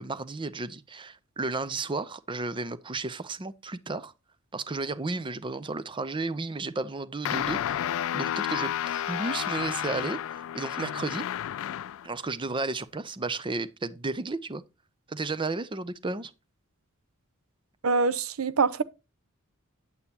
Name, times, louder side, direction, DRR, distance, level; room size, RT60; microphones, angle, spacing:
voice 1, 0.0-4.1 4.5-11.3 12.0-14.6 15.1-16.3, right 3 dB, 25° right, 0.6 m, -33 dB
sound 1, 7.2-12.1, left 10 dB, 70° left, 0.3 m, -31 dB
voice 2, 17.8-18.8, right 4 dB, 75° right, 0.7 m, -24 dB
8.8 x 8.3 x 2.8 m
head